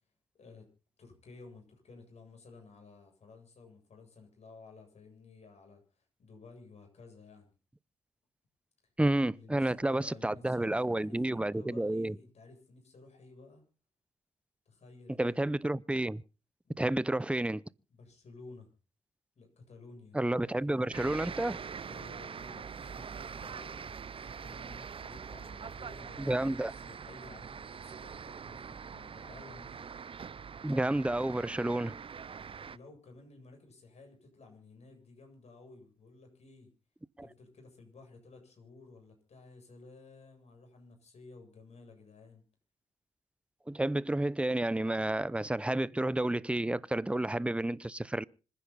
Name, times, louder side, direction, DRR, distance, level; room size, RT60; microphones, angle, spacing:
voice 1, 0.3-0.7 1.0-7.5 9.3-13.6 14.7-15.5 16.6-16.8 17.9-18.7 19.4-20.9 21.9-29.8 32.6-36.7 37.2-42.4, left 3 dB, 50° left, 7.9 m, -54 dB
voice 2, 9.0-12.2 15.2-16.2 16.8-17.6 20.1-21.6 26.2-26.7 30.6-32.0 37.2-37.3 43.7-48.2, right 1 dB, 10° right, 0.7 m, -30 dB
sound 1, 20.9-32.8, right 6 dB, 40° right, 0.7 m, -44 dB
26.0 x 10.0 x 4.2 m
hypercardioid pair, 45°, 14 cm